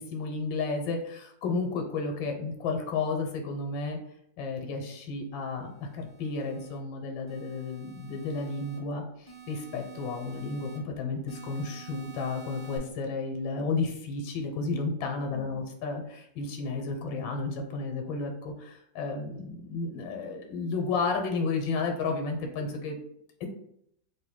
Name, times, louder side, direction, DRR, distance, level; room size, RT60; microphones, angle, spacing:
voice 1, 0.0-4.0 4.4-23.0 23.4-23.5, left 4 dB, 90° left, 3 dB, 1.4 m, -32 dB
sound 1, 5.7-6.8 7.3-8.8 9.3-10.8 11.3-12.8, right 7 dB, 35° right, 0.7 m, -49 dB
3.6 x 2.7 x 3.5 m, 0.73 s
omnidirectional pair, 2.1 m